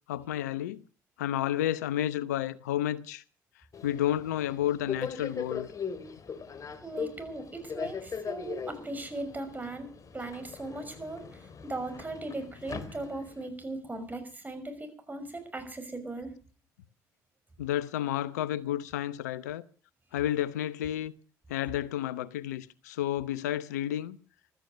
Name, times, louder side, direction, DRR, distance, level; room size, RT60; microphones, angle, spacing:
voice 1, 0.1-0.8 1.2-3.2 3.8-5.7 17.6-19.6 20.1-21.1 21.5-24.2, left 12 dB, 85° left, 0.8 m, -31 dB
Subway metro underground, 3.7-13.5, left 6 dB, 40° left, 2.5 m, -40 dB
voice 2, 6.8-9.9 10.1-16.3, right 2 dB, 20° right, 6.0 m, -38 dB
16.0 x 13.5 x 6.4 m
hypercardioid pair, 60°, 9 cm